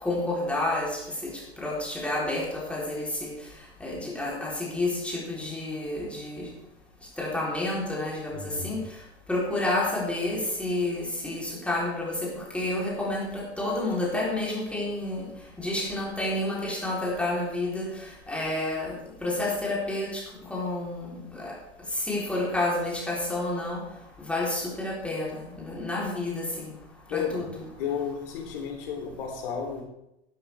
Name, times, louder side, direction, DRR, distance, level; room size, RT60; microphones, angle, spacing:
voice 1, 0.0-1.0 1.6-3.3 3.8-6.4 7.2-8.8 9.3-15.3 15.6-17.9 18.3-18.9 19.2-20.2 20.5-21.5 22.0-23.8 24.3-26.7 27.1-27.6, left 2 dB, 5° left, -5 dB, 3.7 m, -29 dB
voice 2, 8.3-8.7 27.1-27.5 27.8-29.8, left 7 dB, 55° left, 1 dB, 3.4 m, -32 dB
11.5 x 11.5 x 3.5 m, 0.85 s
figure-of-eight pair, 95°, 33 cm